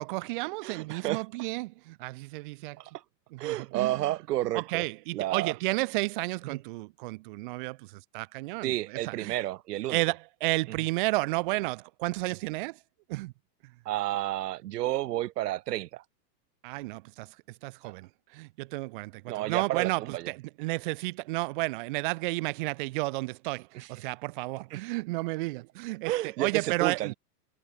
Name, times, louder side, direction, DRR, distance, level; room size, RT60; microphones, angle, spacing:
voice 1, 0.0-2.8 3.3-3.9 4.5-9.4 9.9-12.8 13.1-13.3 16.6-17.4 17.6-27.1, right 23 dB, 35° right, 0.8 m, -32 dB
voice 2, 0.6-1.2 2.8-2.9 3.4-4.8 5.1-5.5 6.4-6.6 8.6-10.0 10.7-10.8 13.8-16.0 17.8-17.9 19.3-20.3 23.7-23.9 24.7-24.8 26.0-27.1, right 15 dB, 80° right, 1.3 m, -31 dB
supercardioid pair, 180°, 47 cm